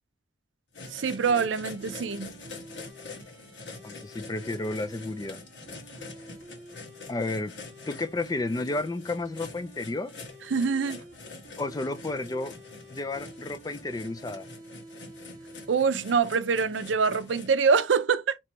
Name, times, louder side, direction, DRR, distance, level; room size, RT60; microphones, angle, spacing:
sound 1, 0.7-17.5, left 3 dB, 70° left, 1.3 m, -45 dB
sound 2, 0.8-15.7, right 1 dB, 45° right, 1.7 m, -49 dB
voice 1, 0.9-2.3 10.5-11.0 15.7-18.4, right 5 dB, 80° right, 0.5 m, -25 dB
voice 2, 3.8-5.4 7.1-7.5 7.9-10.1 11.6-12.5 12.9-14.5, left 2 dB, 20° left, 0.3 m, -32 dB
3.1 x 3.0 x 4.5 m
head